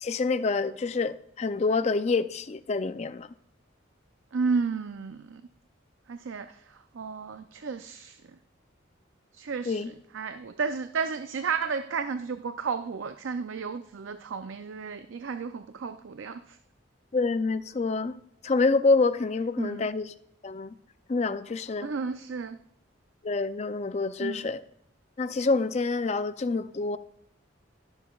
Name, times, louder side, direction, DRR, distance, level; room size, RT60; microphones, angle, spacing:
voice 1, 0.0-3.3 9.7-9.9 17.1-18.2 18.4-20.1 20.4-20.8 21.1-21.9 23.2-24.6 25.2-27.0, left 3 dB, 35° left, 12 dB, 0.4 m, -27 dB
voice 2, 4.3-5.4 6.1-8.2 9.3-9.8 10.1-16.6 19.6-19.9 21.8-22.6 24.2-24.5, right 5 dB, 80° right, 9 dB, 0.4 m, -32 dB
20.0 x 7.0 x 2.3 m, 0.70 s
head